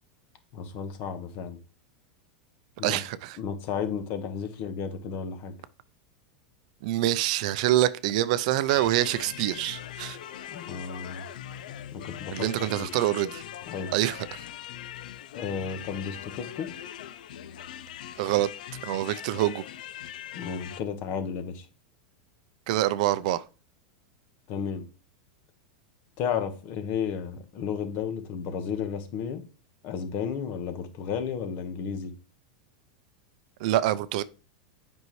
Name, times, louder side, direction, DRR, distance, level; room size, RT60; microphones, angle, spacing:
voice 1, 0.5-1.6 2.8-3.0 3.4-5.6 10.5-11.3 11.9-12.9 13.7-13.9 15.3-16.7 20.3-21.7 24.5-24.9 26.2-29.4 29.8-32.1, left 7 dB, 45° left, 1.3 m, -33 dB
voice 2, 2.8-3.4 6.8-10.2 12.3-13.4 13.9-14.4 18.2-18.5 18.8-19.6 22.7-23.4 33.6-34.2, right 14 dB, 60° right, 0.5 m, -26 dB
sound 1, 8.7-20.8, left 11 dB, 80° left, 0.5 m, -41 dB
8.1 x 5.4 x 3.1 m
supercardioid pair, 135°, 4 cm